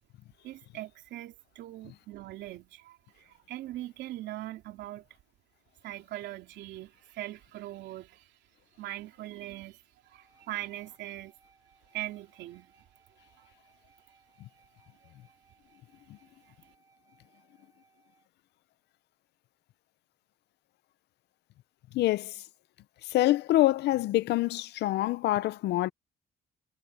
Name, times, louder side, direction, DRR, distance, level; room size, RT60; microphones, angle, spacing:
voice 1, 0.4-5.0 5.8-8.3 8.8-11.3 11.9-12.8 13.4-13.5, right 15 dB, 80° right, 3.2 m, -41 dB
sound 1, 10.0-18.3, right 5 dB, 20° right, 3.7 m, -66 dB
voice 2, 21.9-22.3 23.1-25.9, left 15 dB, 70° left, 0.6 m, -25 dB
cardioid pair, 165°, 18 cm